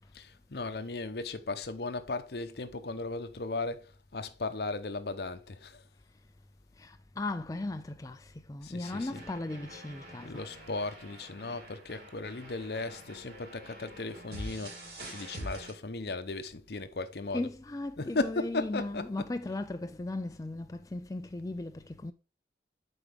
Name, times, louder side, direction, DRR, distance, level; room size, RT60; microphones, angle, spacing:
voice 1, 0.1-5.8 8.6-9.2 10.2-14.8 15.1-17.5 18.0-19.3, left 3 dB, 65° left, 0.8 m, -36 dB
voice 2, 6.8-10.4 17.3-22.1, left 2 dB, 20° left, 0.3 m, -37 dB
sound 1, 8.8-15.7, right 1 dB, 70° right, 3.6 m, -46 dB
8.0 x 5.0 x 3.4 m
head